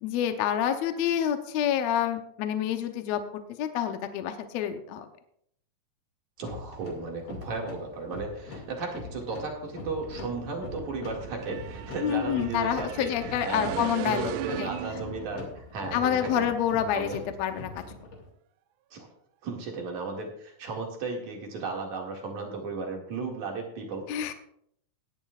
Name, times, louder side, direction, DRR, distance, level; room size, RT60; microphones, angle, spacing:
voice 1, 0.0-3.2 3.6-5.1 12.0-14.3 14.6-14.7 15.9-17.8 24.1-24.3, left 9 dB, 70° left, 7 dB, 1.7 m, -28 dB
sound 1, 6.4-18.2, left 3 dB, 50° left, 3.1 m, -43 dB
voice 2, 6.4-13.1 13.4-16.5 16.9-17.2 18.9-19.1 19.4-24.3, right 4 dB, 60° right, 0 dB, 3.3 m, -35 dB
sound 2, 10.0-15.5, right 11 dB, 80° right, 1.9 m, -38 dB
18.0 x 11.0 x 2.4 m, 0.70 s
omnidirectional pair, 3.9 m